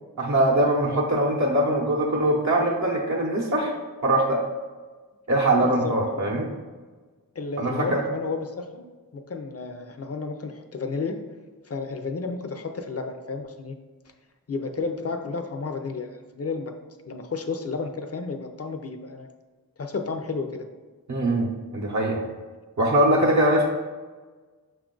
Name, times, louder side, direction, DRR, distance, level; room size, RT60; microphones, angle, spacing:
voice 1, 0.2-3.7 4.0-4.4 5.3-6.5 7.6-8.0 21.1-21.5 21.7-22.3 22.8-23.7, right 1 dB, 55° right, -1 dB, 0.7 m, -22 dB
voice 2, 5.6-6.2 7.4-8.9 9.1-11.2 11.7-13.8 14.5-16.7 17.1-19.3 19.8-20.7, left 4 dB, 45° left, 6 dB, 0.5 m, -32 dB
5.6 x 2.4 x 3.7 m, 1.4 s
wide cardioid pair, 65°, 35 cm